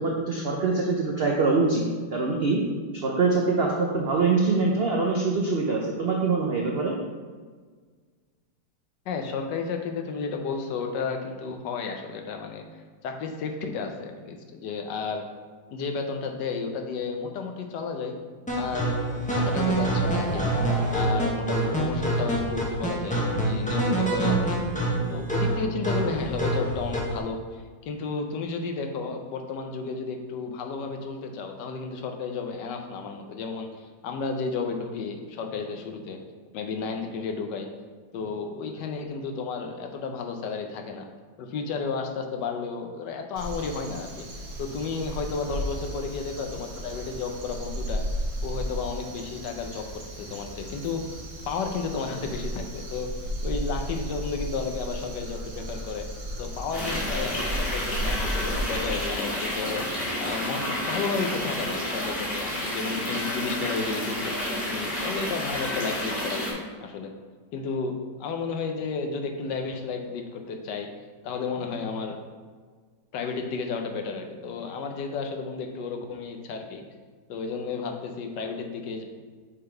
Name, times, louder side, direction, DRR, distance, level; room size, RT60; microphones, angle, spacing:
voice 1, 0.0-1.8 2.1-2.6 2.9-7.0, right 3 dB, 70° right, -1 dB, 0.5 m, -24 dB
voice 2, 9.1-12.6 13.0-15.3 15.7-18.2 18.6-20.5 20.9-24.6 25.1-36.2 36.5-37.7 38.1-41.1 41.4-44.3 44.6-48.0 48.4-51.2 51.4-53.1 53.4-56.1 56.4-59.9 60.2-64.3 64.7-67.1 67.5-70.9 71.2-72.2 73.1-76.8 77.3-79.0, left 4 dB, 75° left, 4 dB, 1.3 m, -32 dB
sound 1, 18.5-27.2, right 2 dB, 5° left, 0.6 m, -26 dB
Crow, 43.4-59.0, equal, 50° right, 1.1 m, -34 dB
sound 2, 56.7-66.5, left 1 dB, 35° left, 1.9 m, -30 dB
6.5 x 3.8 x 4.5 m, 1.5 s
omnidirectional pair, 1.9 m